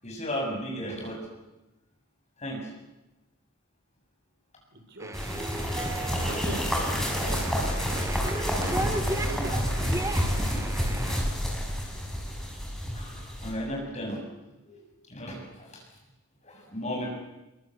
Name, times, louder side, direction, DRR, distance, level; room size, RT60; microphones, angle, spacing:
voice 1, 0.0-1.2 2.4-2.7 12.9-14.2 14.6-15.8 16.4-17.1, equal, 30° left, 0 dB, 7.6 m, -35 dB
voice 2, 4.7-5.1 6.2-6.6 7.2-7.4 8.1-8.3 8.6-10.0, right 2 dB, 55° right, 5 dB, 4.3 m, -40 dB
sound 1, 5.0-11.2, right 2 dB, 15° right, 1.0 m, -36 dB
sound 2, 5.1-13.5, equal, ahead, 6.1 m, -29 dB
24.5 x 23.0 x 8.1 m, 1.0 s
head